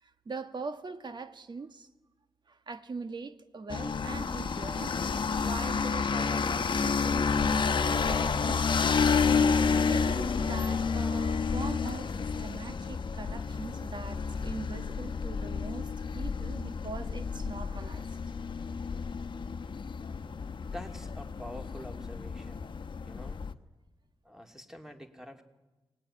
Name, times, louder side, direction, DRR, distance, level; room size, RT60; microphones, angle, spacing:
voice 1, 0.0-1.9 2.5-5.0 5.3-8.7 9.8-18.1, right 4 dB, 60° right, 1.6 m, -41 dB
sound 1, 3.7-23.5, left 5 dB, 65° left, 1.0 m, -30 dB
voice 2, 20.6-22.7 23.1-23.4 24.2-25.4, equal, 5° right, 2.8 m, -46 dB
25.0 x 19.5 x 10.0 m
cardioid pair, 70°, 9 cm